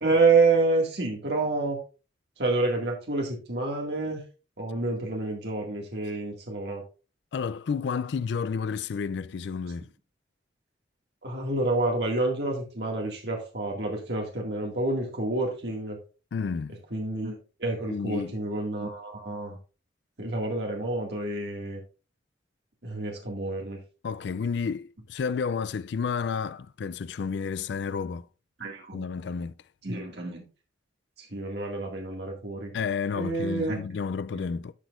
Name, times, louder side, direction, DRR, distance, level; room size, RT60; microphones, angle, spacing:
voice 1, 0.0-1.8 2.4-4.2 4.6-6.8 11.2-16.0 16.7-17.3 17.6-19.6 20.2-21.8 22.8-23.8 28.6-29.1 29.8-30.4 31.2-32.7 33.1-33.8 34.3-34.5, right 3 dB, 60° right, 2.0 m, -28 dB
voice 2, 7.3-9.9 16.3-16.8 17.9-18.3 24.0-28.3 28.9-29.5 32.7-34.7, left 5 dB, 65° left, 0.3 m, -31 dB
12.0 x 6.2 x 2.5 m
head